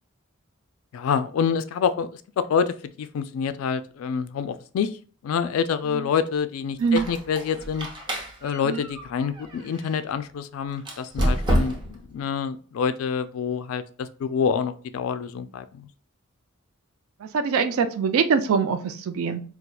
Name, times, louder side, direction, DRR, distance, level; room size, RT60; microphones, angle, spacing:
voice 1, 0.9-2.1 2.4-4.9 5.2-7.9 8.4-15.9, left 6 dB, 75° left, 12 dB, 0.3 m, -27 dB
Squeak, 6.8-10.0 10.8-12.1, equal, 20° right, 0.6 m, -28 dB
voice 2, 17.2-19.4, right 6 dB, 75° right, 9 dB, 0.3 m, -23 dB
4.1 x 2.3 x 2.2 m, 0.41 s
head